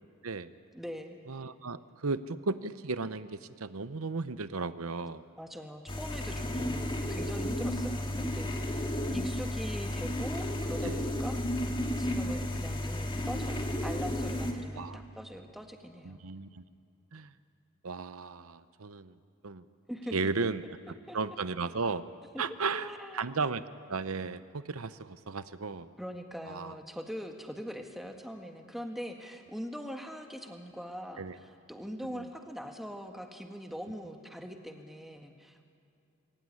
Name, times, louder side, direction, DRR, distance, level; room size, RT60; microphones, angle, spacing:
voice 1, 0.7-1.2 5.4-11.7 12.0-16.2 19.9-20.5 21.1-21.2 22.3-22.4 22.7-23.2 26.0-35.6, equal, ahead, 4 dB, 1.8 m, -42 dB
voice 2, 1.3-5.2 6.5-6.7 10.8-11.0 14.8-15.0 16.0-16.6 17.1-17.3 17.8-19.1 19.4-19.7 20.1-20.6 21.1-22.0 22.4-23.6 23.9-25.9 26.5-26.7 31.2-31.3, right 4 dB, 90° right, 13 dB, 0.9 m, -35 dB
sound 1, 5.9-14.5, left 1 dB, 25° left, 2.1 m, -33 dB
25.5 x 22.0 x 9.8 m, 2.4 s
head